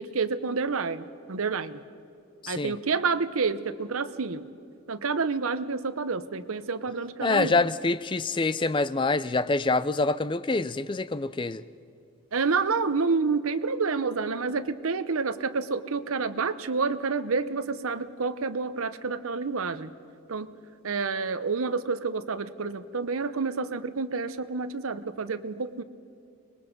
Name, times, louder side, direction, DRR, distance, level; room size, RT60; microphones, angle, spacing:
voice 1, 0.0-1.8 2.5-4.5 4.9-7.7 12.3-19.9 20.3-20.5 20.8-25.8, right 4 dB, 75° right, 0.8 m, -29 dB
voice 2, 2.4-2.7 7.2-11.6, left 3 dB, 20° left, 0.4 m, -26 dB
25.5 x 20.5 x 5.3 m
head